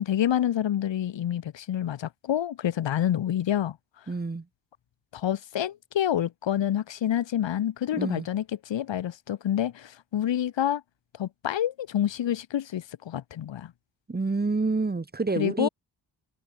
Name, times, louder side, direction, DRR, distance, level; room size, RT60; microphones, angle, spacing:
voice 1, 0.0-3.8 5.1-10.8 11.2-13.7 15.4-15.7, left 11 dB, 85° left, 1.6 m, -28 dB
voice 2, 4.1-4.4 7.9-8.3 14.1-15.7, right 3 dB, 20° right, 1.5 m, -28 dB
wide cardioid pair, 105°, 44 cm